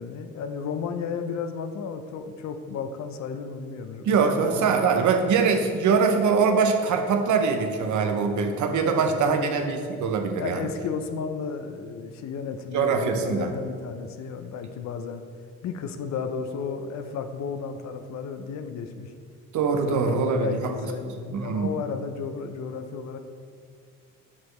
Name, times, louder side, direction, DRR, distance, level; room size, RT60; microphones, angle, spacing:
voice 1, 0.0-4.7 8.8-9.6 10.4-15.2 15.6-19.1 19.7-23.2, left 6 dB, 65° left, 8 dB, 0.6 m, -33 dB
voice 2, 4.1-10.7 12.7-13.5 19.5-20.5 21.3-21.7, right 5 dB, 75° right, 4 dB, 0.8 m, -23 dB
7.3 x 6.2 x 3.2 m, 2.1 s
cardioid pair, 90°, 30 cm